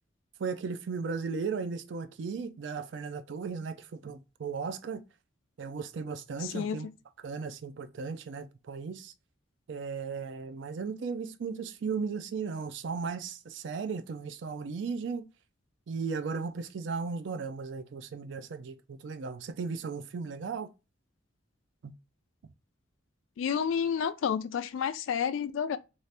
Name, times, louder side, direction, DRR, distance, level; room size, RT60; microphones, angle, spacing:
voice 1, 0.4-5.0 5.6-6.9 7.2-9.1 9.7-15.3 15.9-20.7 21.8-21.9, right 5 dB, 65° right, 0.4 m, -36 dB
voice 2, 23.4-25.8, left 7 dB, 75° left, 0.3 m, -30 dB
2.7 x 2.5 x 3.2 m
head